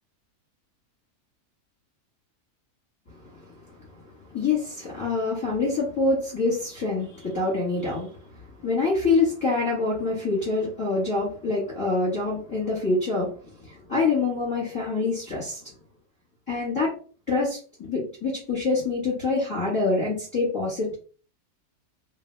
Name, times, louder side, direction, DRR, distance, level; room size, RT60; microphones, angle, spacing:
voice 1, 3.1-3.8 4.3-15.7 16.5-16.9 17.3-17.6 17.9-20.9, left 3 dB, 20° left, -6 dB, 1.5 m, -26 dB
2.8 x 2.7 x 3.2 m, 0.38 s
omnidirectional pair, 1.6 m